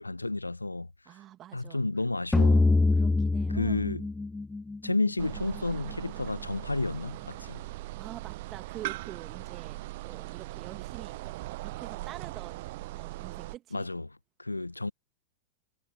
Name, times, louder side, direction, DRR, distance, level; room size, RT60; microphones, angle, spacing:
voice 1, 0.0-0.9 1.5-2.7 3.5-4.0 4.8-7.6 13.7-14.1 14.4-14.9, left 2 dB, 85° left, 1.1 m, -31 dB
voice 2, 1.1-1.8 2.9-3.9 7.9-9.8 10.0-11.3 11.6-12.7 12.9-13.9, right 12 dB, 30° right, 2.3 m, -46 dB
sound 1, 2.3-5.6, left 3 dB, 10° left, 0.3 m, -25 dB
sound 2, 5.2-13.6, right 19 dB, 50° right, 0.6 m, -40 dB
figure-of-eight pair, 90°, 0 cm